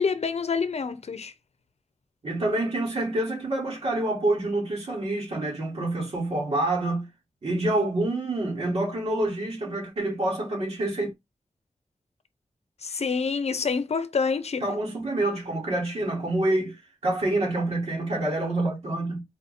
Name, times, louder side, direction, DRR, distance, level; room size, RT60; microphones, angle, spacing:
voice 1, 0.0-1.3 12.8-14.6, left 5 dB, 70° left, 0.7 m, -27 dB
voice 2, 2.2-7.1 7.4-11.1 14.6-19.2, right 2 dB, 65° right, 2.3 m, -27 dB
4.3 x 2.6 x 4.2 m
wide cardioid pair, 70°, 12 cm